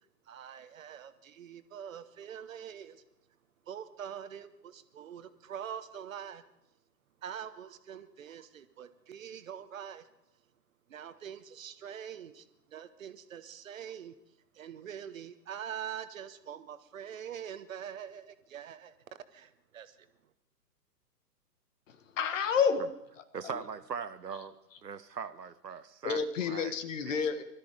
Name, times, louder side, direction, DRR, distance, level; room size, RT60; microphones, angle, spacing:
voice 1, 0.3-3.0 3.7-6.4 7.2-10.1 10.9-14.1 14.5-18.9 19.3-20.1, right 9 dB, 50° right, 1.3 m, -44 dB
voice 2, 21.9-22.8 23.4-23.6 26.0-27.4, left 6 dB, 50° left, 1.6 m, -30 dB
voice 3, 23.3-24.6 24.8-26.7 27.1-27.2, right 6 dB, 80° right, 1.1 m, -40 dB
20.5 x 13.5 x 5.0 m
figure-of-eight pair, 120°, 49 cm